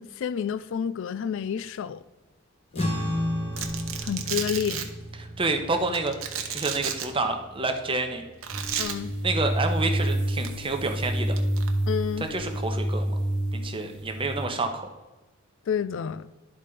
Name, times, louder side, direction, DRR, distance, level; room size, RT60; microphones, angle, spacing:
voice 1, 0.0-2.0 2.7-3.0 3.6-3.7 4.0-4.9 8.8-9.1 11.9-12.3 15.7-16.3, left 7 dB, 65° left, 0.4 m, -30 dB
sound 1, 2.7-9.4, equal, 30° left, 1.2 m, -34 dB
Domestic sounds home sounds, 3.5-4.8 5.9-7.1 8.4-8.9 10.3-10.5 11.4-11.7, right 9 dB, 85° right, 0.9 m, -32 dB
voice 2, 5.4-6.1 6.5-8.2 9.2-11.4 12.3-13.1 13.5-14.9, right 3 dB, 25° right, 0.9 m, -28 dB
sound 2, 8.5-14.5, right 1 dB, 55° right, 1.1 m, -28 dB
11.0 x 4.2 x 4.9 m
head